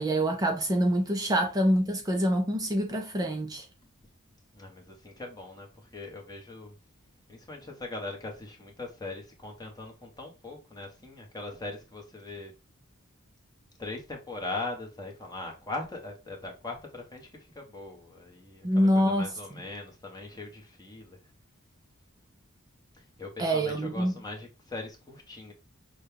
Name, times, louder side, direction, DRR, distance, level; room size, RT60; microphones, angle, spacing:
voice 1, 0.0-3.7 18.6-19.3 23.4-24.1, equal, 15° right, 0.4 m, -25 dB
voice 2, 4.5-5.7 5.9-6.7 7.3-12.5 13.8-21.2 22.9-25.5, left 2 dB, 20° left, 1.1 m, -40 dB
6.4 x 2.2 x 3.4 m
head